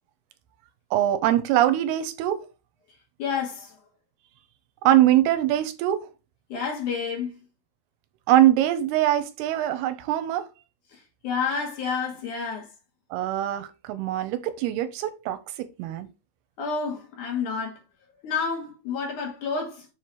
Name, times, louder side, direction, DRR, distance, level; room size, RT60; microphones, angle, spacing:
voice 1, 0.9-2.4 4.8-6.1 8.3-10.4 13.1-16.1, right 13 dB, 85° right, 2.6 m, -22 dB
voice 2, 3.2-3.7 6.5-7.3 10.9-12.7 16.6-17.8 18.2-19.9, left 5 dB, 60° left, 2.8 m, -29 dB
7.1 x 3.0 x 4.5 m
omnidirectional pair, 4.6 m